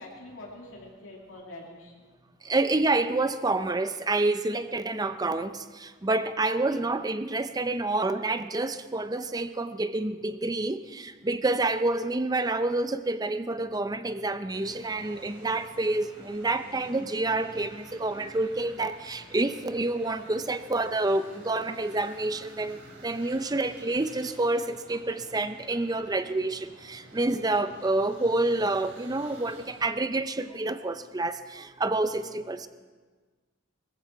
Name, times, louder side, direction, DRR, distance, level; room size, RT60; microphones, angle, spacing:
voice 1, 0.0-2.1 6.4-6.9 32.0-32.4, left 1 dB, 80° left, -3 dB, 2.9 m, -45 dB
voice 2, 2.4-32.7, right 2 dB, 20° right, 11 dB, 0.6 m, -28 dB
sound 1, 14.5-29.9, right 1 dB, 70° right, 4.7 m, -50 dB
20.5 x 15.0 x 4.7 m, 1.4 s
head